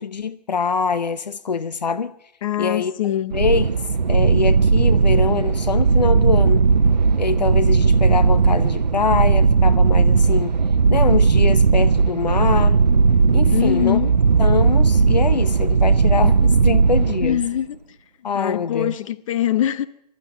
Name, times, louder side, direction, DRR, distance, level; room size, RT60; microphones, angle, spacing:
voice 1, 0.0-2.1 2.6-2.9 3.3-3.7 4.1-6.7 7.2-10.6 10.9-12.8 13.3-14.0 14.4-17.4 18.2-18.9, left 5 dB, 80° left, 0.8 m, -24 dB
voice 2, 2.4-3.3 13.5-14.1 17.2-17.8 18.3-19.9, left 12 dB, 50° left, 1.1 m, -22 dB
sound 1, 3.3-17.6, right 5 dB, 90° right, 0.7 m, -17 dB
22.0 x 13.0 x 9.2 m
figure-of-eight pair, 125°, 21 cm